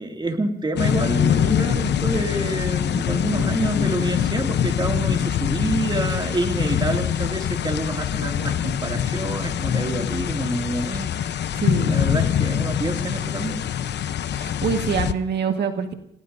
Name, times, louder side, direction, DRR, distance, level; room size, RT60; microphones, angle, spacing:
voice 1, 0.0-13.6, right 2 dB, 20° right, 4 dB, 2.5 m, -28 dB
sound 1, 0.8-15.1, left 9 dB, 60° left, 0.8 m, -24 dB
voice 2, 3.4-3.7 11.5-12.0 14.3-15.9, right 6 dB, 60° right, 5 dB, 1.7 m, -26 dB
28.0 x 18.0 x 2.7 m, 0.75 s
cardioid pair, 90°, 20 cm